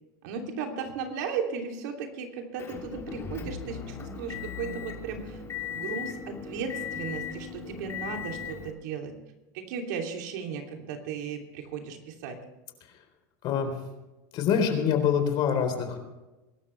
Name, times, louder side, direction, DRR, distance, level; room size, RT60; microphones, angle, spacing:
voice 1, 0.2-5.4 5.7-9.2 9.5-12.4, right 6 dB, 75° right, 3 dB, 3.0 m, -36 dB
Motor vehicle (road) / Engine, 2.6-8.7, left 7 dB, 30° left, 3.5 m, -38 dB
voice 2, 13.4-13.7 14.3-16.0, left 7 dB, 50° left, 6 dB, 3.9 m, -25 dB
23.5 x 12.5 x 3.4 m, 1.1 s
supercardioid pair, 120°, 10 cm